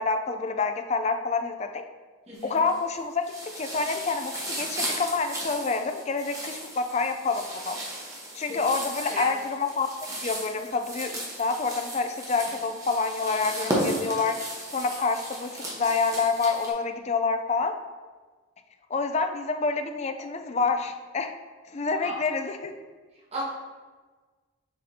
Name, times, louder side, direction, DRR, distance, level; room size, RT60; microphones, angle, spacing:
voice 1, 0.0-1.8 2.4-3.3 3.6-7.8 8.3-9.9 10.2-14.4 14.7-17.7 18.9-21.3 21.7-22.7, left 4 dB, 35° left, 6 dB, 0.4 m, -27 dB
sound 1, 2.3-2.9 3.2-16.7, right 1 dB, 15° right, 1.1 m, -35 dB
voice 2, 2.3-2.6 8.5-8.6 9.1-9.3 22.0-22.1 23.3-23.4, right 1 dB, 30° right, -8 dB, 1.4 m, -34 dB
6.6 x 5.1 x 2.8 m, 1.4 s
head